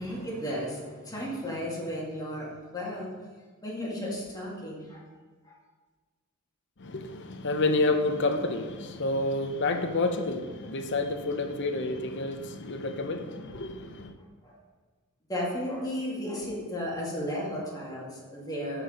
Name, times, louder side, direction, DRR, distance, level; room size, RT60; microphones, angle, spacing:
voice 1, 0.0-2.5 2.7-3.1 3.6-5.1 5.4-5.5 14.4-14.5 15.3-18.8, equal, 15° left, 2.2 m, -34 dB
voice 2, 6.8-14.1, left 2 dB, 55° left, 0.8 m, -29 dB
13.0 x 4.6 x 5.2 m
head